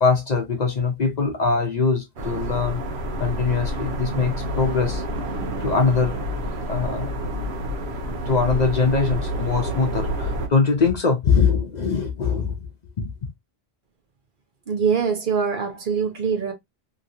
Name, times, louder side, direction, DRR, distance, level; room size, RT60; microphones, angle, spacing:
voice 1, 0.0-2.8 3.2-5.0 5.6-7.1 8.3-12.7 13.0-13.1, left 4 dB, 50° left, 0.7 m, -22 dB
sound 1, 2.2-10.5, equal, 85° right, 1.1 m, -28 dB
voice 2, 14.7-16.5, right 6 dB, 55° right, 0.9 m, -23 dB
2.9 x 2.9 x 2.6 m
omnidirectional pair, 1.1 m